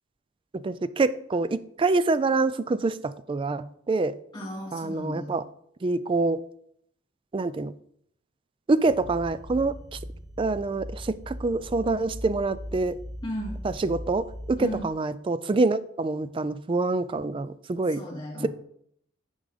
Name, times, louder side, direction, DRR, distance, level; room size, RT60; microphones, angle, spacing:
voice 1, 0.5-4.2 4.7-5.4 5.8-6.4 7.3-7.7 8.7-10.0 10.4-13.0 13.6-18.0, right 3 dB, 25° right, 15 dB, 0.3 m, -26 dB
voice 2, 4.3-5.4 13.2-13.6 14.6-14.9 18.0-18.5, equal, 20° left, -6 dB, 3.1 m, -35 dB
sound 1, 8.8-14.8, equal, 55° right, 1.5 m, -40 dB
10.0 x 3.7 x 5.0 m, 0.70 s
head